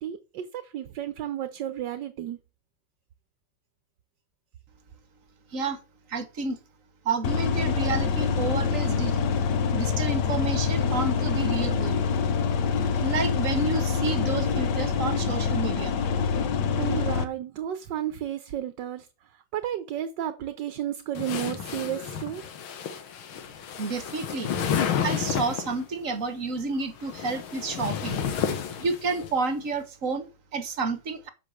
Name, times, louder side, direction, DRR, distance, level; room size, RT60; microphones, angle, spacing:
voice 1, 0.0-2.4 16.8-19.1 19.5-22.4, right 11 dB, 65° right, 1.4 m, -32 dB
voice 2, 6.1-6.6 7.0-9.2 9.7-12.0 13.0-15.9 23.8-24.5 25.0-28.2 28.8-31.3, right 4 dB, 45° right, 1.3 m, -30 dB
sound 1, 7.2-17.2, left 6 dB, 60° left, 1.5 m, -25 dB
sound 2, 21.1-25.8 26.8-29.3, left 8 dB, 90° left, 2.0 m, -31 dB
8.2 x 6.0 x 6.2 m
omnidirectional pair, 2.2 m